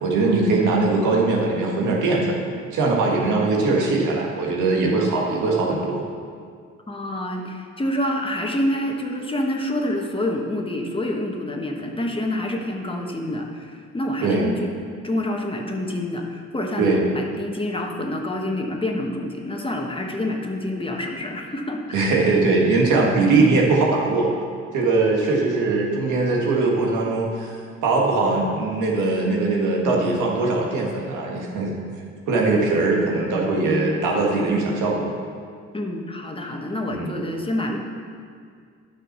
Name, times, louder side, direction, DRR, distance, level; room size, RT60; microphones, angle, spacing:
voice 1, 0.0-2.4 2.7-6.0 14.2-14.5 16.8-17.0 21.9-24.3 24.7-27.5 27.8-31.7 32.3-35.1 36.9-37.1, right 3 dB, 85° right, -2 dB, 1.9 m, -21 dB
voice 2, 6.9-14.7 15.0-21.8 22.4-22.6 35.7-37.8, left 1 dB, 15° left, 1 dB, 1.2 m, -27 dB
10.0 x 6.1 x 6.1 m, 2.1 s
cardioid pair, 90°, 30 cm